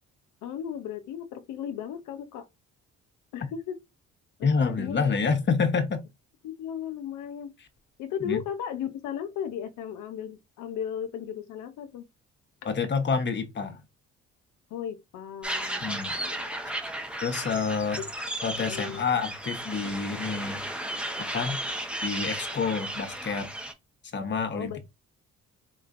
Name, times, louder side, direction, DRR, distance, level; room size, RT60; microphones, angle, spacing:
voice 1, 0.4-2.5 3.3-3.8 4.4-5.0 6.4-7.6 8.0-12.1 14.7-15.8 16.1-16.4 18.0-18.1 18.5-19.0 24.5-24.8, left 9 dB, 85° left, 0.6 m, -35 dB
voice 2, 4.4-6.0 8.2-8.4 12.6-13.8 15.8-16.2 17.2-18.0 18.4-20.6 21.2-21.6 22.0-23.5 24.1-24.8, left 5 dB, 40° left, 0.9 m, -28 dB
sound 1, 15.4-23.7, right 1 dB, 5° right, 0.8 m, -34 dB
3.8 x 3.1 x 2.5 m
cardioid pair, 90°, 30 cm